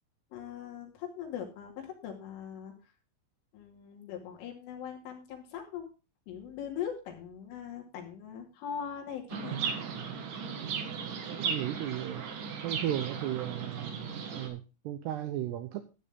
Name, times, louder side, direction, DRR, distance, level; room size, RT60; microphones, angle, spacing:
voice 1, 0.3-2.7 3.5-5.8 6.3-9.6 9.9-10.1, left 8 dB, 75° left, 1 dB, 4.8 m, -41 dB
Chirp tweet, 9.3-14.5, right 6 dB, 60° right, 2.4 m, -36 dB
voice 2, 11.3-12.2 12.6-13.9 14.3-16.0, right 12 dB, 85° right, 10 dB, 2.4 m, -35 dB
12.5 x 9.9 x 3.6 m, 0.31 s
omnidirectional pair, 5.8 m